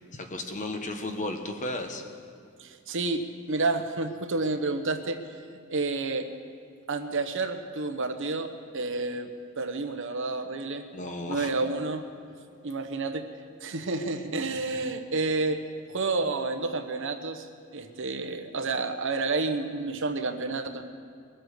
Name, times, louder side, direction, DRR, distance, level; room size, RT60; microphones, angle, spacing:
voice 1, 0.1-2.0 10.9-11.5 14.7-14.8, left 2 dB, 35° left, 5 dB, 1.2 m, -34 dB
voice 2, 2.6-5.2 5.7-6.3 6.9-10.9 11.3-12.0 12.6-13.2 13.6-15.6 15.9-17.5 17.7-20.9, right 3 dB, 60° right, 7 dB, 1.0 m, -30 dB
21.5 x 7.9 x 6.6 m, 2.3 s
head